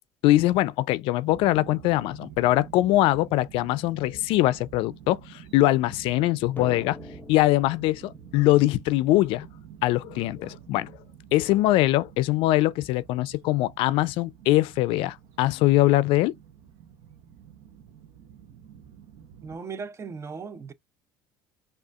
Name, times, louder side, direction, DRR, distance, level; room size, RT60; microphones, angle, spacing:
voice 1, 0.2-7.0 7.3-9.5 9.8-10.9 11.3-16.3, left 16 dB, 70° left, 0.4 m, -22 dB
sound 1, 1.2-19.6, right 8 dB, 70° right, 0.7 m, -48 dB
Drum, 6.6-9.9, left 4 dB, 20° left, 0.6 m, -45 dB
voice 2, 19.4-20.7, right 5 dB, 30° right, 0.5 m, -37 dB
4.9 x 2.4 x 2.4 m
supercardioid pair, 85°, 10 cm